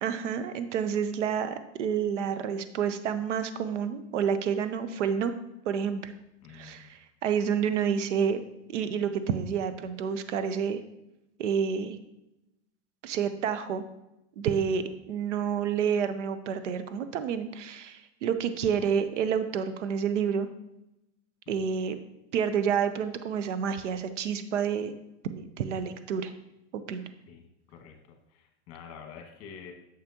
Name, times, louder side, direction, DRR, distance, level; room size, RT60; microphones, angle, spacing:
voice 1, 0.0-5.4 5.7-6.1 6.5-8.4 8.7-10.8 11.4-12.0 13.0-13.8 14.4-20.5 21.5-22.0 22.3-24.9 25.3-26.3 26.7-27.0, right 7 dB, 80° right, 10 dB, 0.8 m, -29 dB
voice 2, 6.4-6.9 21.4-21.6 27.2-29.7, left 7 dB, 40° left, 2 dB, 1.7 m, -48 dB
9.0 x 6.5 x 2.9 m, 0.89 s
supercardioid pair, 135°, 35 cm